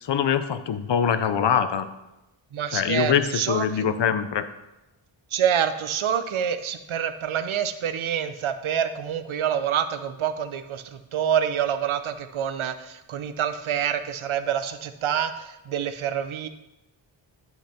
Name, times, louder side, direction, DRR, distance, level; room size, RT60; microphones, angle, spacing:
voice 1, 0.0-1.9 2.7-4.5, left 8 dB, 60° left, 11 dB, 0.7 m, -23 dB
voice 2, 2.5-3.9 5.3-16.5, right 9 dB, 75° right, 11 dB, 0.7 m, -27 dB
10.0 x 5.7 x 4.3 m, 0.96 s
wide cardioid pair, 140°, 48 cm